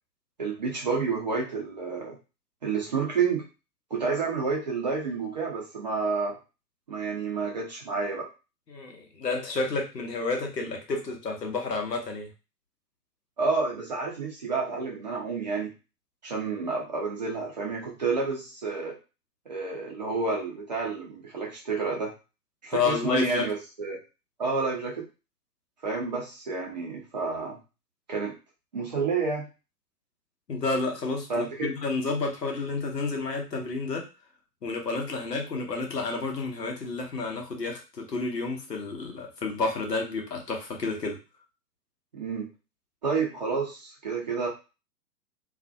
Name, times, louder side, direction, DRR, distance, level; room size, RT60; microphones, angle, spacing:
voice 1, 0.4-2.2 2.6-3.4 3.9-6.3 6.9-8.3 13.4-15.7 16.2-19.0 19.5-22.1 22.6-24.0 24.4-25.0 25.8-27.6 28.1-28.3 28.7-29.5 31.3-31.7 42.1-42.5 43.0-44.5, right 4 dB, 30° right, -2 dB, 0.4 m, -29 dB
voice 2, 8.7-12.3 22.7-23.4 30.5-34.1 34.6-41.2, left 3 dB, 80° left, 2 dB, 0.9 m, -30 dB
2.5 x 2.1 x 2.5 m, 0.30 s
figure-of-eight pair, 110°, 49 cm